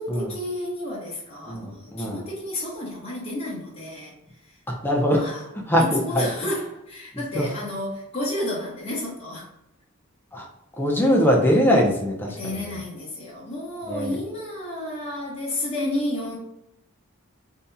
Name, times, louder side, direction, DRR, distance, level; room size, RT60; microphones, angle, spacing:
voice 1, 0.0-4.6 5.1-5.4 6.0-9.5 12.3-16.4, left 1 dB, 30° left, -6 dB, 1.0 m, -31 dB
voice 2, 1.5-2.2 4.7-5.3 5.7-6.3 7.3-7.5 10.3-10.5 10.8-12.8 13.9-14.2, equal, 10° left, -1 dB, 0.6 m, -22 dB
5.1 x 2.8 x 2.3 m, 0.86 s
head